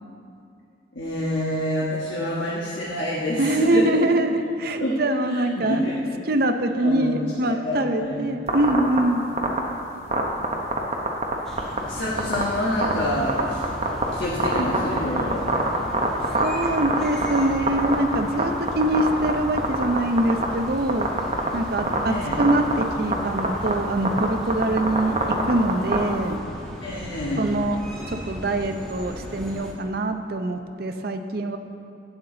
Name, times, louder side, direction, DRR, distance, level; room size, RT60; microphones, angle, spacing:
voice 1, 0.9-4.0 4.8-5.0 5.2-6.0 6.7-8.3 11.9-13.6 14.1-15.5 22.1-22.4 26.8-27.5, left 1 dB, 75° left, -6 dB, 1.3 m, -27 dB
voice 2, 3.4-5.8 6.3-9.3 16.4-21.1 21.5-26.4 27.4-27.8 28.1-31.6, right 1 dB, 50° right, 6 dB, 0.6 m, -24 dB
sound 1, 8.5-9.0 9.4-9.6 10.1-11.3 11.6-11.8 12.2-12.4 12.8-12.9 13.3-14.0 14.4-17.4 17.7-18.4 18.7-19.3 19.6-20.4 20.9-21.5 21.8-22.0 22.3-22.8 23.1-23.2 23.4-23.7 24.0-26.0, right 3 dB, 35° right, 1.0 m, -21 dB
sound 2, 11.5-29.7, equal, 5° left, 1.1 m, -37 dB
11.5 x 8.5 x 3.9 m, 2.6 s
head